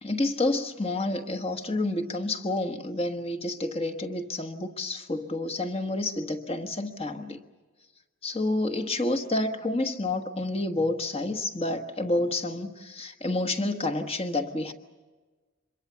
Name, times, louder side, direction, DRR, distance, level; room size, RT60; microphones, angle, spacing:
voice 1, 0.0-7.4 8.2-14.7, left 2 dB, 30° left, 7 dB, 1.3 m, -29 dB
25.5 x 22.5 x 7.0 m, 1.3 s
head